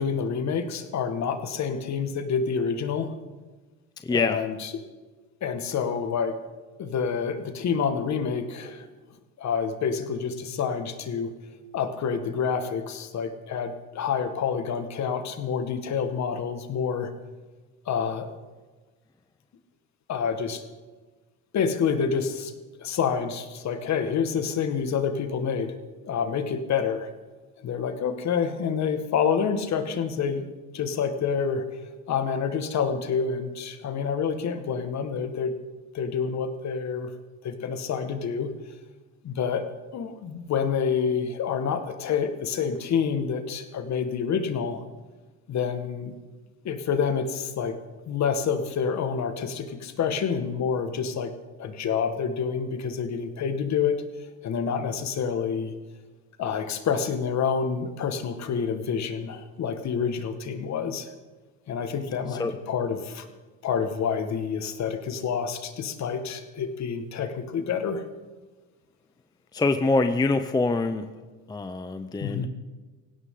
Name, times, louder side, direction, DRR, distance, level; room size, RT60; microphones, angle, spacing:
voice 1, 0.0-3.1 4.1-4.8 5.4-6.4 6.8-8.8 9.4-11.3 11.7-17.1 17.8-18.3 20.1-20.6 21.5-22.5 22.8-25.8 26.0-27.1 27.6-30.5 30.7-31.6 32.1-35.5 35.9-37.1 37.4-38.5 39.2-39.7 39.9-44.8 45.5-46.1 46.6-47.8 48.1-51.3 51.6-54.0 54.4-55.8 56.4-61.1 61.7-63.2 63.6-68.1 72.2-72.5, left 6 dB, 45° left, 8 dB, 1.7 m, -28 dB
voice 2, 4.0-4.4 62.4-62.5 69.5-71.0 71.5-72.5, left 3 dB, 10° left, 9 dB, 0.6 m, -24 dB
18.0 x 16.5 x 3.8 m, 1.3 s
supercardioid pair, 110°, 38 cm